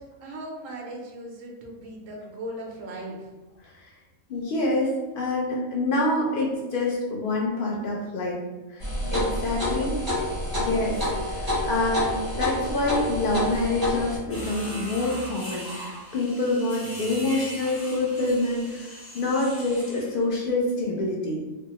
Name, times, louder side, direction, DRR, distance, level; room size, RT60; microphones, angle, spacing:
voice 1, 0.2-3.3 9.6-9.8 10.2-10.6, right 1 dB, 70° right, -1 dB, 1.0 m, -38 dB
voice 2, 4.3-8.4 8.7-8.8 9.1-9.9 10.6-21.4, left 2 dB, 80° left, -4 dB, 0.4 m, -26 dB
sound 1, 8.8-14.2, left 1 dB, 20° right, 0.8 m, -28 dB
sound 2, 14.3-20.2, equal, 20° left, 0.4 m, -39 dB
3.3 x 2.0 x 2.8 m, 1.2 s
omnidirectional pair, 1.5 m